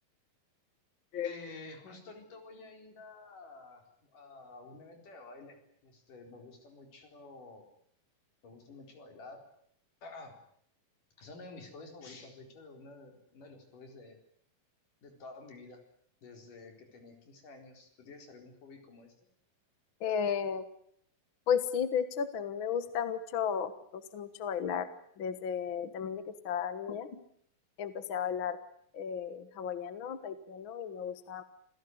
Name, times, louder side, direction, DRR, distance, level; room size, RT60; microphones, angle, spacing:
voice 1, 1.2-7.7 8.4-9.4 10.0-10.4 11.2-14.2 15.0-15.8 16.2-19.1, left 3 dB, 65° left, 4 dB, 5.8 m, -50 dB
voice 2, 20.0-20.6 21.5-24.9 25.2-27.2 27.8-28.6 28.9-31.4, left 7 dB, 50° left, 12 dB, 1.6 m, -34 dB
27.5 x 17.0 x 9.5 m, 0.66 s
omnidirectional pair, 4.0 m